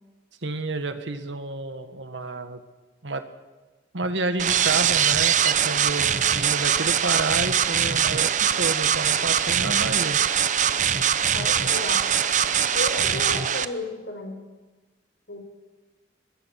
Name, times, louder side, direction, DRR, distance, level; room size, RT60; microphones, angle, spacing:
voice 1, 0.4-2.6 3.0-3.2 3.9-10.2, right 2 dB, 75° right, 8 dB, 1.7 m, -30 dB
sound 1, 4.4-13.6, right 8 dB, 40° right, 0.7 m, -22 dB
voice 2, 11.3-12.1 12.7-14.4 15.3-15.4, left 1 dB, 70° left, 4 dB, 4.9 m, -33 dB
24.0 x 20.5 x 6.0 m, 1.2 s
head